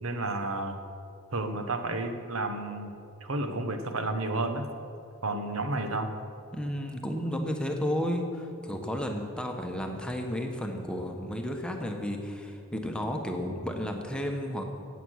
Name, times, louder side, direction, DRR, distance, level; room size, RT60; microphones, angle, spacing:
voice 1, 0.0-0.8 1.3-2.9 3.2-4.6 5.2-6.1, right 2 dB, 75° right, 6 dB, 1.2 m, -31 dB
voice 2, 6.5-14.6, equal, 5° left, 3 dB, 1.1 m, -32 dB
16.5 x 8.2 x 6.4 m, 2.6 s
head